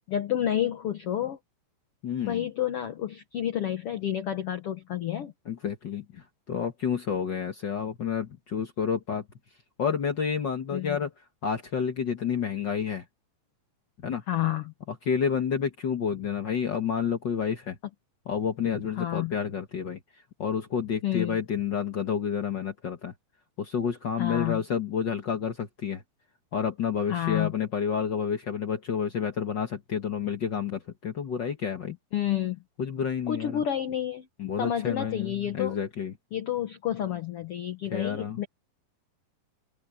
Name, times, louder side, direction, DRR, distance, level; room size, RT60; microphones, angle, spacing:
voice 1, 0.1-1.4 2.3-5.3 10.7-11.0 14.3-14.7 19.0-19.3 21.0-21.4 24.2-24.6 27.1-27.5 32.1-32.6 33.3-34.3 34.6-35.8 36.3-38.5, left 11 dB, 85° left, 1.2 m, -29 dB
voice 2, 2.0-2.4 5.5-9.2 9.8-11.1 11.4-13.0 14.0-14.2 15.0-17.8 18.2-20.0 20.4-23.1 23.6-26.0 26.5-32.0 32.8-33.6 34.4-36.1 37.9-38.4, left 7 dB, 65° left, 1.1 m, -29 dB
open air
omnidirectional pair, 4.3 m